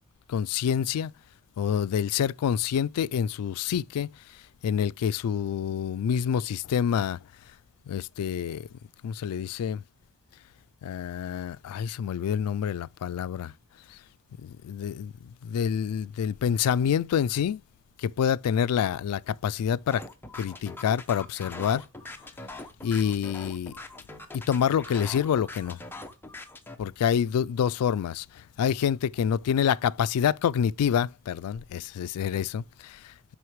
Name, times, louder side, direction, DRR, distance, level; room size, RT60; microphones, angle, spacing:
voice 1, 0.3-1.1 1.6-4.1 4.6-7.2 7.9-8.7 9.0-9.8 10.8-13.5 13.9-14.0 14.4-15.1 15.4-17.6 18.0-20.0 20.4-21.8 22.8-23.7 24.3-25.8 26.8-33.1, left 8 dB, 85° left, 0.3 m, -27 dB
sound 1, 19.9-26.8, left 2 dB, 10° left, 0.8 m, -42 dB
7.8 x 5.6 x 3.1 m
head